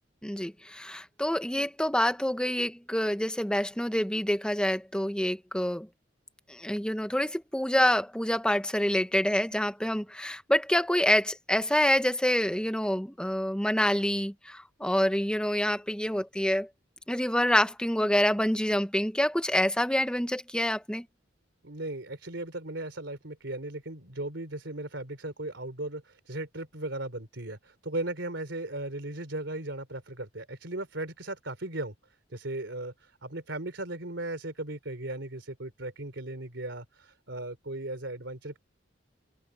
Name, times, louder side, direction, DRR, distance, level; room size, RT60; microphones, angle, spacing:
voice 1, 0.2-5.9 6.5-16.7 17.1-21.0, left 1 dB, 5° left, 1.1 m, -27 dB
voice 2, 21.6-31.9 32.3-38.6, right 2 dB, 85° right, 3.4 m, -37 dB
head